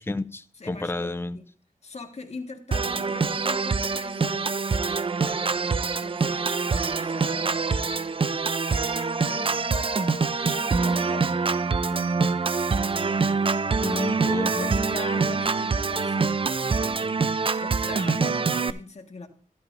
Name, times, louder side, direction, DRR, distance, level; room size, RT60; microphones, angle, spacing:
voice 1, 0.0-1.4 13.8-14.8, left 2 dB, 15° left, 0.6 m, -30 dB
voice 2, 0.6-1.5 1.8-4.8 5.8-8.2 9.3-11.5 11.8-12.5 14.5-16.3 17.0-17.3 17.6-19.3, left 3 dB, 50° left, 1.7 m, -41 dB
Organ, 2.7-18.7, right 4 dB, 40° right, 0.6 m, -25 dB
13.5 x 11.5 x 2.7 m
wide cardioid pair, 70°, 15 cm